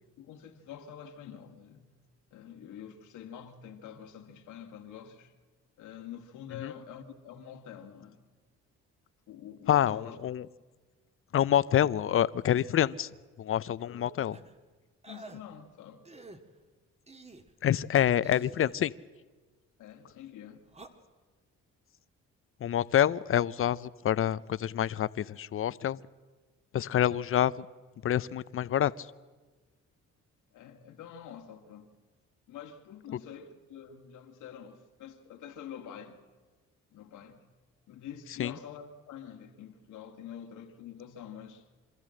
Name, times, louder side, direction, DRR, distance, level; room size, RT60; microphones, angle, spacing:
voice 1, 0.2-1.9 2.3-5.3 5.8-8.2 9.3-10.2 13.8-14.3 15.1-16.0 19.8-20.6 26.8-27.0 30.5-31.9 32.5-36.2 36.9-37.4 37.9-41.7, left 9 dB, 85° left, 2.0 m, -46 dB
voice 2, 9.7-10.4 11.3-13.1 13.4-14.4 17.6-18.9 22.6-26.0 26.7-27.7 28.0-29.1 38.4-38.5, left 10 dB, 45° left, 0.6 m, -27 dB
sound 1, 14.3-14.5 15.0-15.4 16.0-16.4 17.1-17.5 18.2-18.8 20.7-20.9, right 2 dB, 20° right, 1.7 m, -48 dB
25.5 x 13.5 x 7.7 m
cardioid pair, 90°, 30 cm